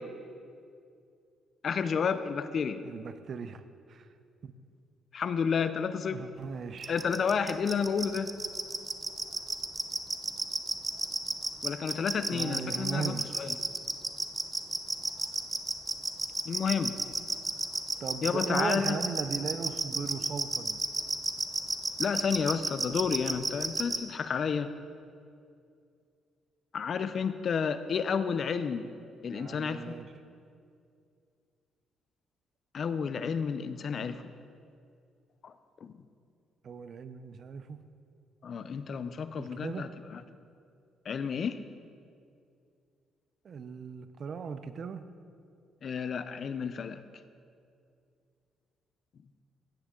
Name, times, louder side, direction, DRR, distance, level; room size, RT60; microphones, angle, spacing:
voice 1, 1.6-2.8 5.1-6.2 6.9-8.3 11.6-13.6 16.4-17.0 18.2-19.0 22.0-24.7 26.7-28.9 29.2-30.0 32.7-34.3 35.4-35.5 35.8-35.9 38.4-40.2 41.0-41.6 45.8-47.0, left 6 dB, 55° left, 11 dB, 0.6 m, -31 dB
voice 2, 2.8-3.6 3.9-4.1 4.4-4.5 6.1-6.9 12.3-13.3 18.0-20.8 29.2-30.0 36.6-37.8 39.4-39.9 43.4-45.0, right 6 dB, 55° right, 11 dB, 0.7 m, -37 dB
sound 1, 6.8-24.0, right 3 dB, 20° right, 0.8 m, -31 dB
15.5 x 10.0 x 3.8 m, 2.4 s
cardioid pair, 90°, 0 cm